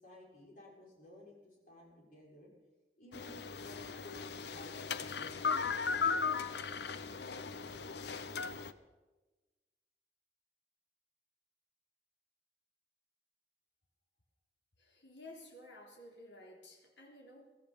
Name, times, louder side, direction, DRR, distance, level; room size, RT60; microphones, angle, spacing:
voice 1, 0.0-2.5 3.0-5.9, left 1 dB, 50° left, -4 dB, 6.2 m, -55 dB
sound 1, 3.1-8.7, left 5 dB, 70° left, 0.7 m, -37 dB
voice 2, 14.8-17.6, left 1 dB, 90° left, -1 dB, 3.7 m, -54 dB
23.0 x 14.0 x 4.2 m, 1.2 s
head